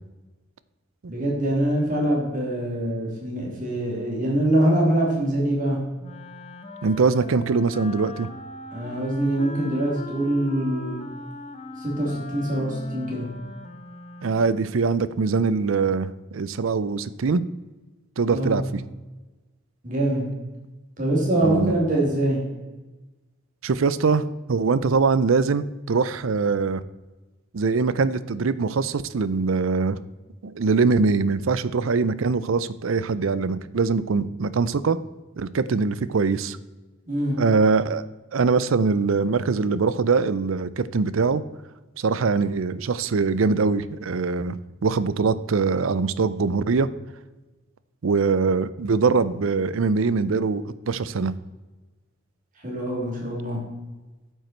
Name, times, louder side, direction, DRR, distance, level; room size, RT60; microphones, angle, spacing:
voice 1, 1.1-5.8 8.7-11.0 11.8-13.2 18.3-18.5 19.8-20.3 21.0-22.4 37.1-37.4 52.6-53.6, right 1 dB, 40° right, -3 dB, 3.2 m, -24 dB
Wind instrument woodwind instrument, 6.0-14.7, left 3 dB, 30° left, 0.8 m, -40 dB
voice 2, 6.8-8.3 14.2-17.4 18.2-18.8 21.4-21.7 23.6-24.2 24.5-26.8 27.5-30.0 30.4-35.0 35.4-36.6 37.4-38.0 38.3-41.4 42.0-46.9 48.0-51.3, right 4 dB, 75° right, 16 dB, 0.5 m, -22 dB
9.2 x 8.0 x 4.5 m, 1.2 s
head